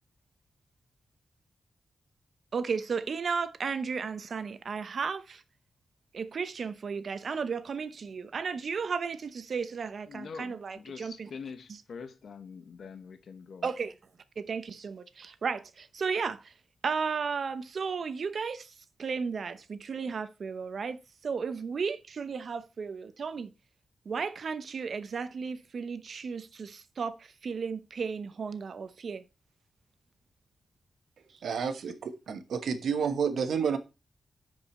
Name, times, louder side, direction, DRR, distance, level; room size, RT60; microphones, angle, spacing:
voice 1, 2.5-5.4 6.1-11.3 13.6-13.9 14.4-16.5 16.8-18.7 19.0-23.5 24.1-29.2, right 5 dB, 60° right, 0.8 m, -34 dB
voice 2, 10.1-13.7, left 5 dB, 70° left, 1.1 m, -44 dB
voice 3, 31.4-33.8, right 6 dB, 80° right, 1.2 m, -30 dB
10.0 x 5.0 x 4.3 m
cardioid pair, 85°, 0 cm